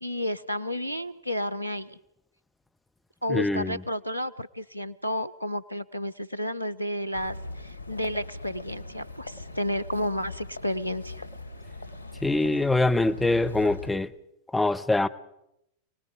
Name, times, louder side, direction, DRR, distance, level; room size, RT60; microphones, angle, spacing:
voice 1, 0.0-2.0 3.2-11.2, equal, 90° left, 14 dB, 0.8 m, -31 dB
voice 2, 3.3-3.7 12.2-14.1 14.5-15.1, left 2 dB, 10° left, 10 dB, 0.9 m, -24 dB
sound 1, 7.1-13.9, left 3 dB, 90° right, 1.4 m, -40 dB
28.5 x 19.0 x 5.0 m, 0.80 s
figure-of-eight pair, 90°, 0 cm